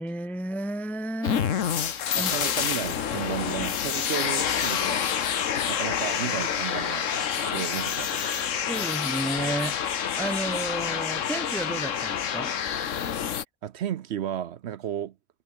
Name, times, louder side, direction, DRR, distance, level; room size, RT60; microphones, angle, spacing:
voice 1, 0.0-1.5 2.1-2.3 8.7-12.5, right 1 dB, ahead, 0.5 m, -32 dB
sound 1, 1.2-13.4, left 8 dB, 80° left, 1.4 m, -28 dB
voice 2, 2.1-5.0 5.3-8.6 9.0-9.2 13.6-15.2, right 10 dB, 65° right, 0.9 m, -34 dB
Bowed string instrument, 6.6-12.8, right 3 dB, 40° right, 2.8 m, -49 dB
omnidirectional pair, 1.3 m